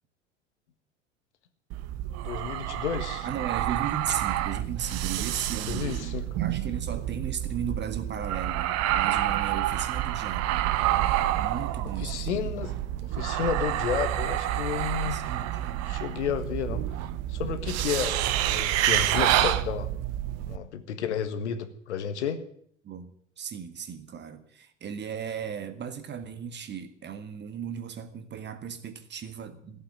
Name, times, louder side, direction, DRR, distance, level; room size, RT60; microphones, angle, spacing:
sound 1, 1.7-20.6, right 13 dB, 45° right, 1.1 m, -28 dB
voice 1, 2.2-3.3 5.7-6.2 12.0-12.7 13.0-15.2 15.9-16.8 17.3-19.9 20.5-22.4, left 8 dB, 70° left, 1.6 m, -32 dB
voice 2, 3.2-10.7 11.4-12.5 15.0-15.9 22.8-23.1 23.4-29.8, right 7 dB, 30° right, 1.8 m, -36 dB
15.0 x 8.4 x 9.9 m
figure-of-eight pair, 75°, 35 cm